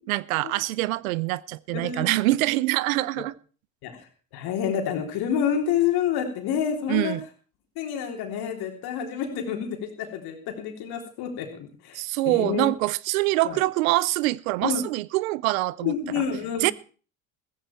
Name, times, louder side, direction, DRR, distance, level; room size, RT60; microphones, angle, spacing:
voice 1, 0.1-3.3 6.9-7.2 11.9-15.9 16.6-16.7, right 18 dB, 85° right, 0.7 m, -24 dB
voice 2, 1.7-2.1 3.8-4.0 4.3-7.2 7.8-12.7 13.4-13.6 14.6-14.8 15.8-16.7, left 8 dB, 65° left, 3.5 m, -28 dB
14.5 x 14.5 x 4.4 m
hypercardioid pair, 75°, 40 cm